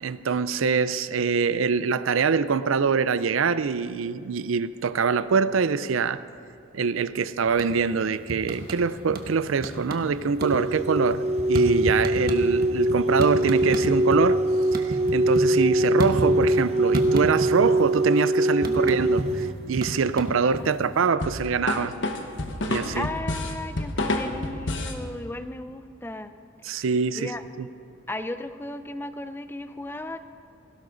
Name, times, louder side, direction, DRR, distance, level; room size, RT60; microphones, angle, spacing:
voice 1, 0.0-6.2 6.7-14.4 14.7-21.9 22.7-23.1 26.6-27.3 27.6-27.7, right 5 dB, 80° right, 15 dB, 0.5 m, -24 dB
sound 1, 7.5-8.0 8.3-9.3 9.6-10.1 10.4-14.2 14.5-16.6 16.9-17.8 18.1-20.9, right 1 dB, 45° right, 1.2 m, -31 dB
sound 2, 10.4-19.5, right 1 dB, 30° right, 0.6 m, -23 dB
voice 2, 18.6-19.0 20.6-21.6 22.9-26.3 26.7-26.8 27.1-27.4 28.1-30.2, left 2 dB, 10° left, 10 dB, 0.5 m, -36 dB
sound 3, 21.2-25.0, left 2 dB, 65° left, 1.3 m, -28 dB
18.0 x 16.5 x 4.0 m, 2.4 s
head